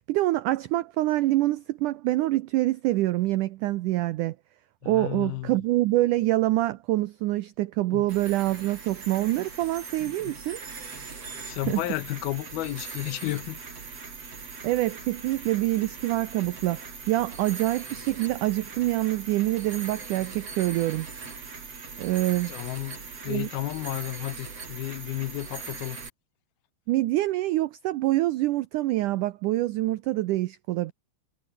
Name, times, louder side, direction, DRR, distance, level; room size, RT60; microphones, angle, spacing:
voice 1, 0.1-4.4 4.9-10.6 11.7-11.8 14.6-16.8 17.1-21.1 22.0-22.5 23.3-23.5 26.9-30.9, right 16 dB, 85° right, 1.8 m, -26 dB
voice 2, 4.8-5.6 7.9-8.1 10.0-10.4 11.4-13.6 22.5-26.0, left 18 dB, 80° left, 2.6 m, -33 dB
sound 1, 8.1-26.1, right 5 dB, 40° right, 5.3 m, -41 dB
omnidirectional pair, 4.5 m